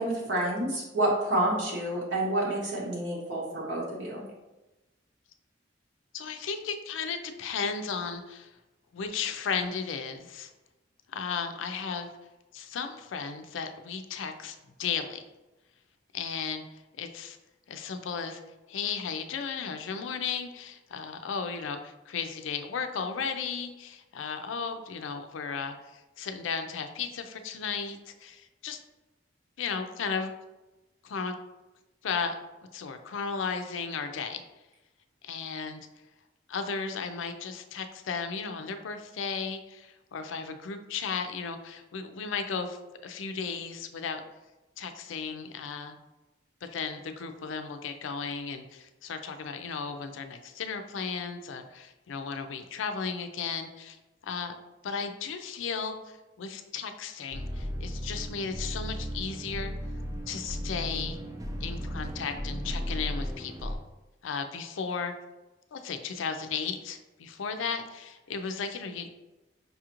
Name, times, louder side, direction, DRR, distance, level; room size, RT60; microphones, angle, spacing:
voice 1, 0.0-4.2, right 1 dB, 70° right, -5 dB, 0.9 m, -29 dB
voice 2, 6.1-8.5 8.9-10.5 11.1-12.1 12.5-15.2 16.1-17.4 17.7-18.4 18.7-28.8 29.6-30.3 31.0-31.3 32.0-32.4 32.7-34.4 35.2-35.8 36.5-44.2 44.8-46.0 46.6-54.0 54.2-54.5 54.8-59.7 60.3-61.2 61.6-63.8 64.2-65.1 65.7-69.1, left 5 dB, 85° left, 7 dB, 0.4 m, -35 dB
sound 1, 57.3-63.8, equal, 20° right, 0.4 m, -35 dB
5.4 x 2.4 x 2.9 m, 1.1 s
head